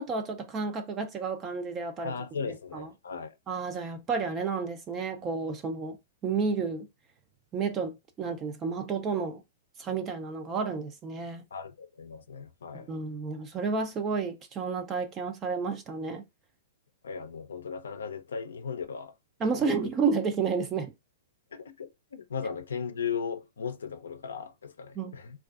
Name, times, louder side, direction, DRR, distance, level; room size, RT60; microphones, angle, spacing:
voice 1, 0.0-2.1 2.7-2.9 3.5-6.0 6.2-6.9 7.5-9.4 9.8-11.4 12.7-16.2 19.4-20.9 25.0-25.1, right 5 dB, 25° right, 0.4 m, -31 dB
voice 2, 2.0-3.3 11.5-12.9 17.0-19.1 19.4-19.8 21.5-25.4, left 6 dB, 85° left, 0.4 m, -37 dB
2.5 x 2.2 x 2.3 m
hypercardioid pair, 130°, 0 cm